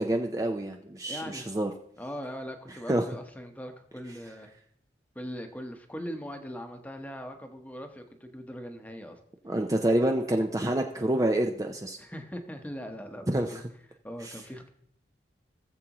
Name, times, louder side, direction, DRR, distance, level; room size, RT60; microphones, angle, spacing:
voice 1, 0.0-1.7 2.7-3.0 9.4-12.0 13.3-13.6 14.2-14.4, right 1 dB, 20° right, 3 dB, 0.5 m, -27 dB
voice 2, 1.1-1.4 2.0-4.5 5.1-9.2 12.0-13.6 14.0-14.7, equal, 10° left, 5 dB, 0.9 m, -40 dB
18.0 x 7.4 x 3.0 m, 0.68 s
head